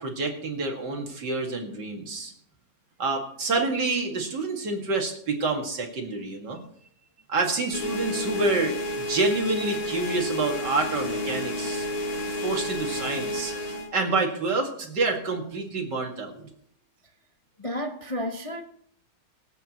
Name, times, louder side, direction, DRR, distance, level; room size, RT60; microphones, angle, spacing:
voice 1, 0.0-2.3 3.0-6.6 7.3-16.5, right 3 dB, 75° right, 2.7 m, -28 dB
sound 1, 7.7-13.9, left 1 dB, 60° left, 2.6 m, -31 dB
voice 2, 17.6-18.6, left 1 dB, 30° left, 0.6 m, -31 dB
23.5 x 8.4 x 3.1 m
omnidirectional pair, 1.9 m